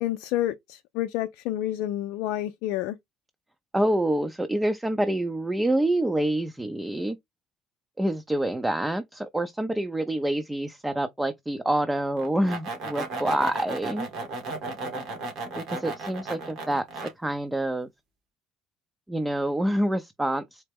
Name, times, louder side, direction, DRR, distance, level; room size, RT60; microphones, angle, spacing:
voice 1, 0.0-3.0, left 13 dB, 80° left, 0.4 m, -29 dB
voice 2, 3.7-7.2 8.0-14.1 15.6-16.9 17.2-17.9 19.1-20.6, right 1 dB, 15° right, 0.7 m, -27 dB
sound 1, 12.2-17.1, right 3 dB, 70° right, 2.2 m, -35 dB
4.3 x 2.8 x 3.6 m
hypercardioid pair, 65°, 0 cm